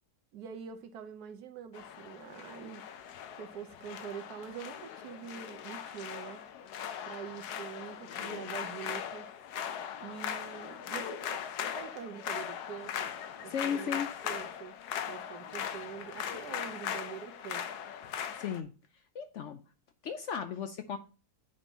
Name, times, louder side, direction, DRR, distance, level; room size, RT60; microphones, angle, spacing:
voice 1, 0.3-2.8 3.4-6.4 7.0-9.3 10.0-14.8 15.1-17.6, right 8 dB, 80° right, 1.3 m, -45 dB
sound 1, 1.7-18.6, left 9 dB, 85° left, 1.2 m, -39 dB
voice 2, 13.5-14.1 18.4-18.7 19.1-19.6 20.0-21.0, left 7 dB, 65° left, 0.7 m, -35 dB
8.1 x 2.8 x 5.3 m
omnidirectional pair, 1.7 m